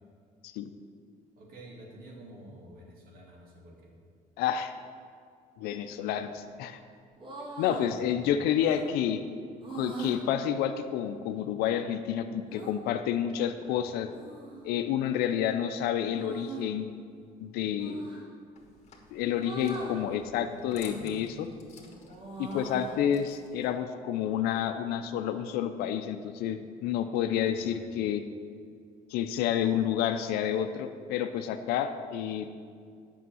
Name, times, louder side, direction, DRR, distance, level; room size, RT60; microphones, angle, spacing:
voice 1, 1.3-3.9 7.6-8.4 13.6-13.9 19.8-21.0 27.3-27.8, right 1 dB, 70° right, -1 dB, 2.5 m, -50 dB
voice 2, 4.4-4.8 5.6-6.8 7.6-9.2 9.7-14.1 14.6-16.9 17.4-18.1 19.1-21.5 22.4-28.2 29.1-32.5, left 9 dB, 90° left, 8 dB, 0.6 m, -29 dB
sound 1, 7.1-7.9 8.6-8.9 9.6-10.2 12.5-12.7 14.1-14.7 16.0-16.7 17.8-18.2 19.4-20.0 20.9-21.4 21.8-23.0, right 3 dB, 35° right, 2.2 m, -41 dB
sound 2, 18.6-23.7, left 3 dB, 45° left, 1.7 m, -51 dB
8.4 x 6.5 x 7.7 m, 2.2 s
cardioid pair, 105°, 16 cm